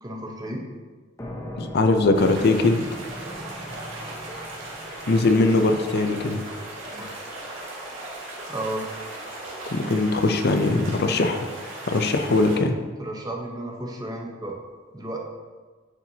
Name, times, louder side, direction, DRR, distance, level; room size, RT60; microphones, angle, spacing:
voice 1, 0.0-0.6 6.9-7.2 8.5-8.9 11.0-11.2 13.0-14.5 14.9-15.2, right 1 dB, 20° right, 0 dB, 0.9 m, -33 dB
sound 1, 1.2-8.6, left 1 dB, 15° left, 0.8 m, -41 dB
voice 2, 1.6-2.9 5.1-6.4 9.7-11.5 11.9-12.8, left 2 dB, 55° left, 6 dB, 0.6 m, -21 dB
sound 2, 2.1-12.6, right 2 dB, 85° right, 1.9 m, -37 dB
9.7 x 4.5 x 2.8 m, 1.4 s
head